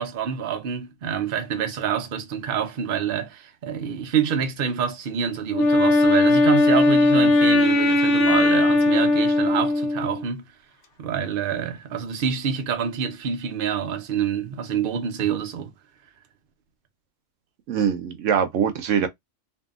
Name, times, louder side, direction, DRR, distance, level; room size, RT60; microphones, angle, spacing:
voice 1, 0.0-10.5 11.0-15.7, right 7 dB, 55° right, 0.8 m, -27 dB
Wind instrument woodwind instrument, 5.5-10.3, left 2 dB, 75° left, 1.0 m, -18 dB
voice 2, 17.7-19.1, right 8 dB, 80° right, 0.9 m, -23 dB
2.7 x 2.7 x 2.3 m
omnidirectional pair, 1.3 m